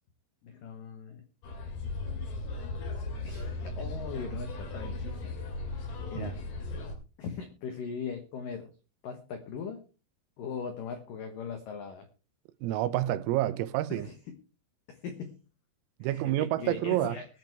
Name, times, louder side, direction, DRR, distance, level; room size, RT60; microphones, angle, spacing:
voice 1, 0.4-1.2 3.2-5.3 6.1-6.4 7.2-8.7 9.0-9.8 10.4-12.1 13.9-14.3 14.9-15.4 16.0-17.3, left 6 dB, 80° left, 1.9 m, -40 dB
sound 1, 1.4-7.0, left 2 dB, 60° left, 4.3 m, -37 dB
voice 2, 12.6-14.1 16.0-17.2, right 14 dB, 90° right, 3.5 m, -28 dB
21.5 x 9.1 x 3.4 m
omnidirectional pair, 5.9 m